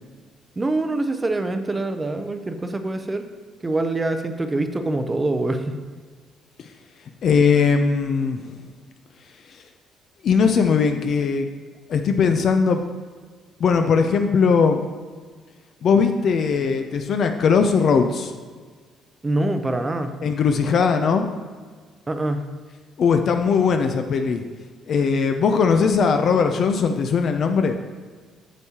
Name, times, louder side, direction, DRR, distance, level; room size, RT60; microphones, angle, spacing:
voice 1, 0.6-3.2 3.6-5.8 19.2-20.1 22.1-22.4, right 2 dB, 15° right, 8 dB, 0.5 m, -24 dB
voice 2, 7.2-8.5 10.2-11.5 11.9-12.9 13.6-14.8 15.8-18.3 20.2-21.3 23.0-24.4 24.9-27.8, left 5 dB, 50° left, 6 dB, 0.4 m, -19 dB
8.1 x 7.1 x 2.9 m, 1.5 s
cardioid pair, 140°, 0 cm